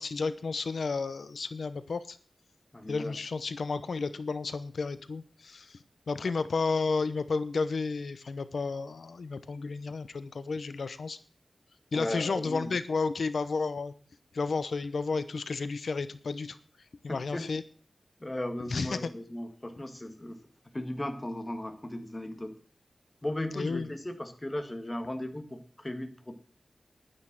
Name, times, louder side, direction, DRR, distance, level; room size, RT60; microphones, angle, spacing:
voice 1, 0.0-2.2 2.9-5.8 6.1-11.2 11.9-13.9 14.3-16.6 17.0-17.6 18.7-19.1 23.5-23.9, left 4 dB, 85° left, 14 dB, 0.9 m, -32 dB
voice 2, 2.7-3.2 6.2-6.3 11.9-12.7 17.3-17.4 18.2-20.4 20.7-22.5 23.2-26.3, left 1 dB, 20° left, 7 dB, 1.7 m, -36 dB
11.0 x 9.8 x 6.0 m, 0.43 s
wide cardioid pair, 100°, 0 cm